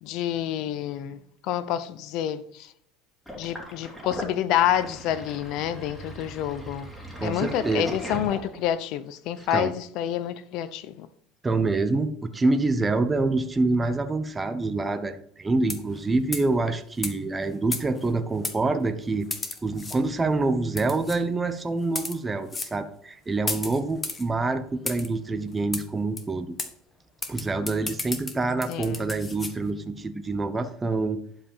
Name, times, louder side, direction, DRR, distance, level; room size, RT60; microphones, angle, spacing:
voice 1, 0.0-2.7 3.4-6.9 7.2-11.1 28.7-29.1, left 11 dB, 60° left, 0.8 m, -28 dB
Sink (filling or washing), 3.3-8.8, equal, 5° left, 3.2 m, -38 dB
voice 2, 7.2-7.8 9.5-9.7 11.4-19.3 19.6-26.5 27.3-31.2, right 3 dB, 15° right, 0.9 m, -26 dB
sound 1, 15.6-16.0 16.3-16.5 17.0-17.1 17.7-18.1 18.4-18.6 19.3-20.0 20.8-21.2 21.8-22.2 22.5-22.7 23.5-24.2 24.9-25.1 25.7-25.8 26.2-26.3 26.6-26.7 27.2-29.5, left 3 dB, 20° left, 1.4 m, -33 dB
11.5 x 5.0 x 5.5 m
supercardioid pair, 105°, 0 cm